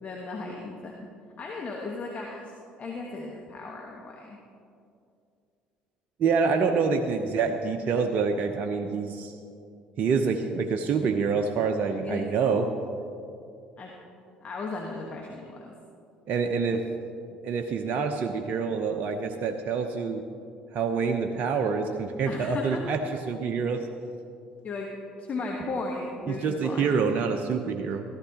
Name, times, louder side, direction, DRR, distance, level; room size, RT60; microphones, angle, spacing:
voice 1, 0.0-1.1 1.4-2.5 2.8-4.4 12.0-12.3 13.8-13.9 14.4-15.7 22.3-22.9 24.6-26.9, left 3 dB, 40° left, 0 dB, 1.3 m, -36 dB
voice 2, 6.2-9.4 10.0-12.7 16.3-16.8 17.4-20.2 20.7-23.0 23.3-23.9 26.3-28.0, right 5 dB, 50° right, 5 dB, 0.8 m, -26 dB
15.0 x 14.0 x 2.9 m, 2.5 s
hypercardioid pair, 55°, 4 cm